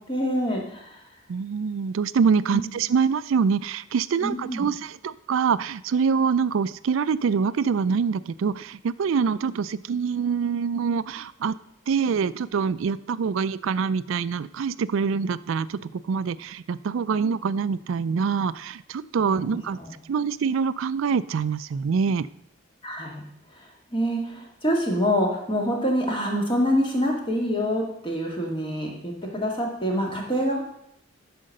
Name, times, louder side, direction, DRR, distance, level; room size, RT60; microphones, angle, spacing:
voice 1, 0.1-1.0 2.5-2.7 4.2-4.7 19.3-19.9 22.8-23.2 23.6-30.6, equal, 25° left, -1 dB, 2.0 m, -26 dB
voice 2, 1.3-11.6 11.9-19.8 20.1-22.3, right 6 dB, 75° right, 16 dB, 0.4 m, -25 dB
11.5 x 5.1 x 6.5 m, 0.78 s
head